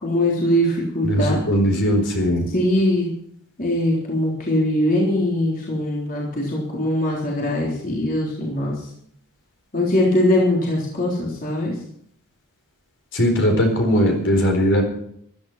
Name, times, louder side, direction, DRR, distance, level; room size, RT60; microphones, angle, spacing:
voice 1, 0.0-1.4 2.5-3.1 3.6-8.8 9.7-11.7, left 1 dB, 40° left, -4 dB, 3.7 m, -21 dB
voice 2, 1.0-2.4 13.1-14.8, equal, 55° left, 2 dB, 4.4 m, -19 dB
15.0 x 12.5 x 5.9 m, 0.69 s
head